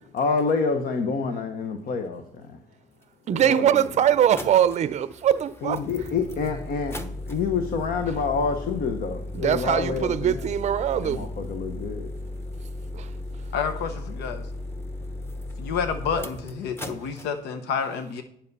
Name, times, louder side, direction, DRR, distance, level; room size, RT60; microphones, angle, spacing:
voice 1, 0.1-2.6 3.3-3.8 5.6-7.0 7.3-10.5 11.0-12.1, left 5 dB, 60° left, 1.1 m, -27 dB
sound 1, 3.0-3.1 3.7-17.3, left 1 dB, 15° left, 1.1 m, -36 dB
voice 2, 3.3-5.8 9.3-11.3 12.9-13.1, right 10 dB, 45° right, 0.5 m, -22 dB
voice 3, 13.5-14.4 15.6-18.2, left 6 dB, 80° left, 0.9 m, -29 dB
10.5 x 5.7 x 5.5 m
cardioid pair, 110°, 17 cm